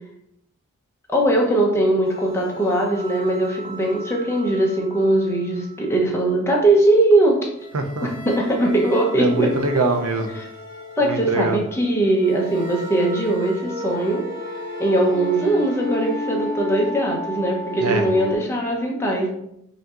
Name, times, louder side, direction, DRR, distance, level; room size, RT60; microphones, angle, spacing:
voice 1, 1.1-7.5 8.3-9.5 11.0-14.2 14.8-19.3, right 1 dB, 10° left, -2 dB, 0.7 m, -20 dB
sound 1, 2.0-5.7 7.6-18.3, left 1 dB, 45° left, 0.5 m, -34 dB
voice 2, 7.7-8.1 9.2-10.4 11.0-11.6 17.8-18.0, right 3 dB, 75° right, 4 dB, 0.5 m, -23 dB
5.1 x 2.7 x 2.4 m, 0.78 s
head